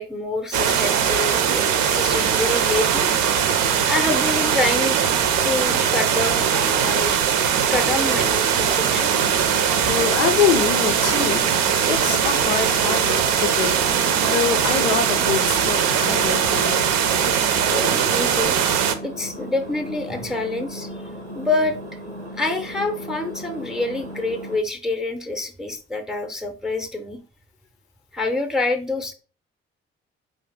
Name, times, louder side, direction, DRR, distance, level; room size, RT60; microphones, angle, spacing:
voice 1, 0.0-3.1 3.9-5.0 5.4-7.2 7.7-9.1 17.7-18.6 19.0-20.9 21.3-21.8 22.3-27.2 28.1-29.1, left 2 dB, ahead, 7 dB, 0.6 m, -26 dB
sound 1, 0.5-19.0, right 8 dB, 60° right, 0.6 m, -20 dB
Engine, 8.9-24.6, equal, 90° right, 0.8 m, -36 dB
voice 2, 9.8-16.9, left 8 dB, 80° left, 7 dB, 0.5 m, -25 dB
4.8 x 2.5 x 3.6 m, 0.36 s
figure-of-eight pair, 40°, 33 cm